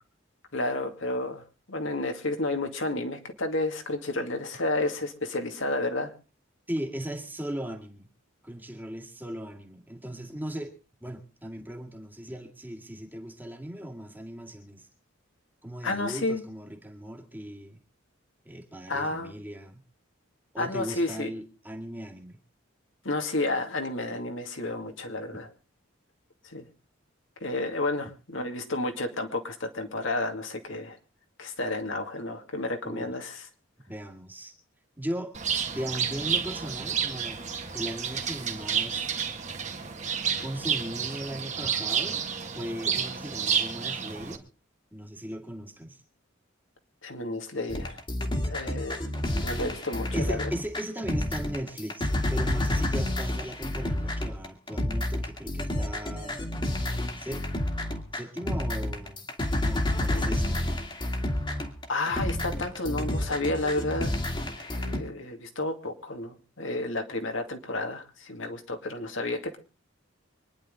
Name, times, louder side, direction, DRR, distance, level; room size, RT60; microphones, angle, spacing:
voice 1, 0.5-1.4 1.7-6.1 15.8-16.4 18.9-19.3 20.6-21.3 23.0-25.5 26.4-26.7 27.4-31.0 31.4-33.5 47.0-48.0 48.4-49.0 49.3-50.4 60.1-60.4 61.9-64.1 64.6-69.6, left 2 dB, 70° left, 5 dB, 2.4 m, -31 dB
voice 2, 6.7-8.1 8.4-10.7 11.0-14.9 15.6-17.8 18.4-19.8 20.5-22.4 32.8-33.1 33.9-34.5 35.0-35.3 35.7-37.4 37.7-39.2 40.4-42.2 42.5-44.4 44.9-46.0 50.1-56.4 57.2-57.4 58.1-59.2 59.6-60.7, equal, 10° right, 2 dB, 2.1 m, -37 dB
Bird, 35.3-44.4, right 7 dB, 35° right, 1.9 m, -30 dB
sound 1, 47.7-65.0, left 1 dB, 25° left, 2.1 m, -30 dB
25.5 x 10.5 x 3.8 m, 0.34 s
head